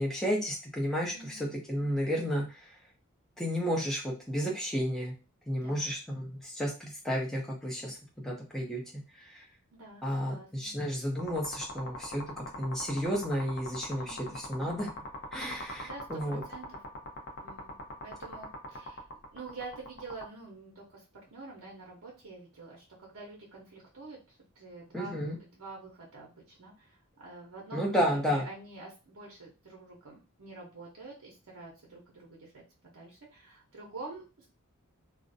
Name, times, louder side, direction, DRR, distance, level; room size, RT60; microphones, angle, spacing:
voice 1, 0.0-1.4 1.7-2.4 3.4-5.1 5.5-7.9 8.2-8.8 9.3-9.4 10.0-12.2 12.6-14.9 15.3-16.4 24.9-25.4 27.7-28.4, equal, ahead, -2 dB, 0.5 m, -32 dB
voice 2, 1.1-1.6 5.5-5.9 9.7-10.7 13.9-14.4 15.6-16.8 17.4-17.7 18.0-19.0 19.3-34.5, right 3 dB, 65° right, -2 dB, 0.7 m, -47 dB
sound 1, 11.2-20.2, left 1 dB, 50° left, 0.6 m, -42 dB
2.4 x 2.0 x 2.5 m, 0.30 s
head